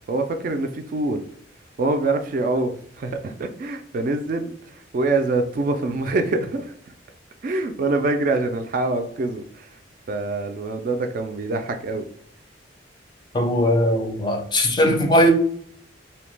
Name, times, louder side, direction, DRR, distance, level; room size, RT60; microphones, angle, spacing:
voice 1, 0.1-1.2 1.8-6.7 7.4-9.8 10.1-12.0, right 2 dB, 45° right, 0.3 m, -25 dB
voice 2, 13.3-15.3, equal, 25° left, 0.4 m, -19 dB
2.7 x 2.1 x 3.1 m
head